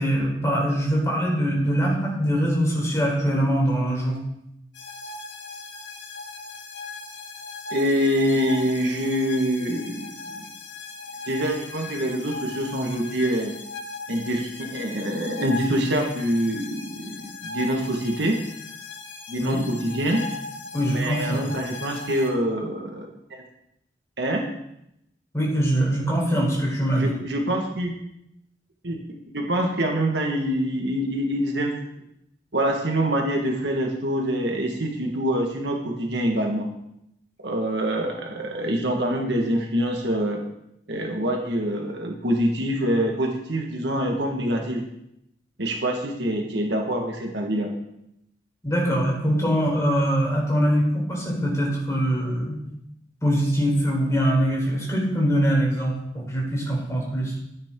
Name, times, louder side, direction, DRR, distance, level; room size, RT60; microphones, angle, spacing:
voice 1, 0.0-4.2 19.4-19.6 20.7-21.5 25.3-27.1 48.6-52.6 53.2-57.3, equal, 15° left, -3 dB, 4.1 m, -23 dB
sound 1, 4.7-22.3, left 3 dB, 80° left, 2.0 m, -38 dB
voice 2, 7.7-10.5 11.3-13.5 14.1-18.4 19.3-20.2 20.9-23.4 24.2-24.5 27.0-27.9 28.8-29.0 29.3-31.7 32.5-36.7 37.4-40.4 40.9-44.9 45.6-47.7, equal, 65° right, 1 dB, 1.8 m, -25 dB
14.5 x 9.6 x 3.8 m, 0.80 s
head